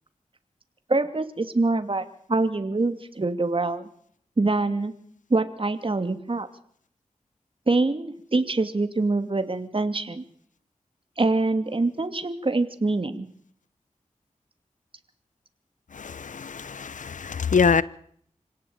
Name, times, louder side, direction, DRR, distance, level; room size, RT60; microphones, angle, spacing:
voice 1, 0.9-3.9 4.4-4.9 5.3-6.5 7.7-10.2 11.2-13.3, right 3 dB, 45° right, 2.6 m, -25 dB
voice 2, 15.9-17.8, left 6 dB, 80° left, 0.9 m, -24 dB
26.0 x 17.5 x 8.9 m
cardioid pair, 45°, 13 cm